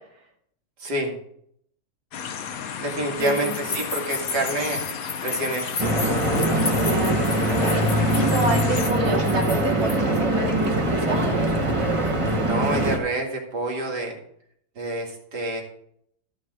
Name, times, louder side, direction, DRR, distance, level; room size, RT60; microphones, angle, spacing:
voice 1, 0.8-1.1 2.8-4.8 5.2-5.8 12.5-14.1 14.8-15.6, right 1 dB, 80° right, 1 dB, 2.8 m, -27 dB
sound 1, 2.1-8.9, left 7 dB, 65° left, 1.2 m, -33 dB
sound 2, 3.2-10.2, left 4 dB, 45° left, 1.0 m, -34 dB
voice 2, 3.2-3.5 6.8-11.4, right 3 dB, 65° right, 0 dB, 2.8 m, -29 dB
Stream / Boat Water vehicle, 5.8-13.0, right 1 dB, 20° right, 1.3 m, -22 dB
13.5 x 5.7 x 6.2 m, 0.70 s
omnidirectional pair, 1.8 m